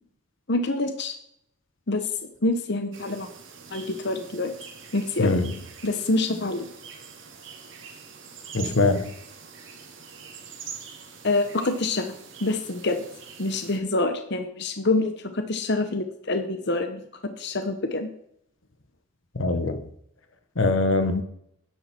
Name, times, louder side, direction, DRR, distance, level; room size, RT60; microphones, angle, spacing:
voice 1, 0.5-1.1 1.9-2.1 2.4-3.3 3.7-4.5 4.9-5.3 5.8-6.7 11.2-12.2 12.4-13.0 13.4-18.1 21.1-21.2, left 2 dB, 60° left, 1.1 m, -26 dB
sound 1, 2.9-13.8, right 6 dB, 70° right, 2.6 m, -44 dB
voice 2, 5.2-5.5 8.5-9.1 19.3-19.8 20.6-21.2, left 2 dB, 80° left, 1.3 m, -22 dB
12.5 x 10.5 x 4.5 m
head